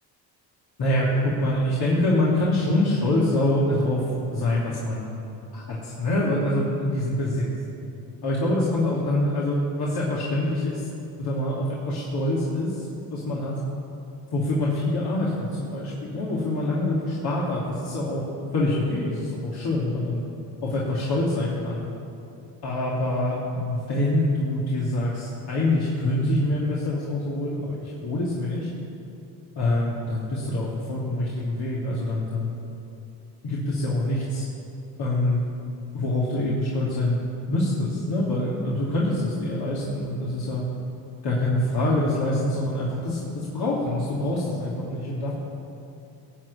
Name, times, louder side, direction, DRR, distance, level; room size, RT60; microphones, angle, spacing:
voice 1, 0.8-4.0 4.3-5.1 5.5-7.5 8.2-10.9 11.2-13.6 14.3-18.2 18.5-20.2 20.6-21.9 22.6-28.7 29.6-32.5 33.4-34.5 35.0-35.4 35.9-37.2 37.5-40.6 41.2-45.3, left 1 dB, 55° left, -6 dB, 2.8 m, -25 dB
17.0 x 6.5 x 8.6 m, 2.8 s
supercardioid pair, 80°, 45 cm